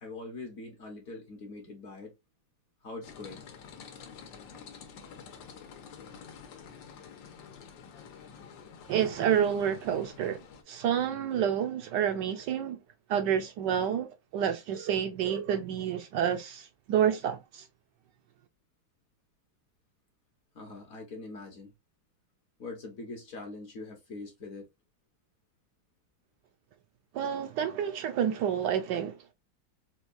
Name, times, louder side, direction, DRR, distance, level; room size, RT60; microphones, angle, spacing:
voice 1, 0.0-2.2 2.8-3.4 4.5-4.7 20.5-21.7 22.6-24.7, left 3 dB, 55° left, 1.1 m, -43 dB
sound 1, 3.0-10.6, left 6 dB, 75° left, 1.4 m, -49 dB
voice 2, 8.9-10.4 10.7-12.8 13.1-14.1 14.3-17.6 27.1-29.3, right 9 dB, 75° right, 1.1 m, -29 dB
4.3 x 2.3 x 2.5 m
omnidirectional pair, 2.1 m